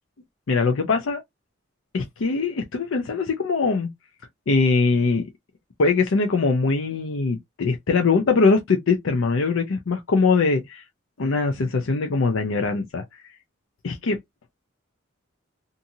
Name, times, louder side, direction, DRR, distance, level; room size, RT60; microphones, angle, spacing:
voice 1, 0.5-1.2 1.9-3.9 4.5-5.3 5.8-10.8 11.2-13.2 13.8-14.2, left 4 dB, 80° left, 0.5 m, -22 dB
2.6 x 2.6 x 2.6 m
head